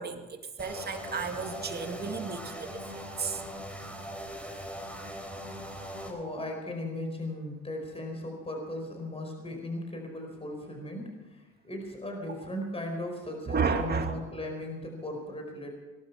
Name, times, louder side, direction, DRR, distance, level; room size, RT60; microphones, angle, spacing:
voice 1, 0.0-3.4 12.2-12.4 13.5-14.2, right 5 dB, 35° right, 5 dB, 2.3 m, -33 dB
sound 1, 0.6-6.1, equal, 5° left, 4.3 m, -40 dB
voice 2, 6.0-15.7, left 1 dB, 20° left, 3 dB, 4.8 m, -37 dB
19.5 x 11.5 x 6.0 m, 1.2 s
supercardioid pair, 80°, 30 cm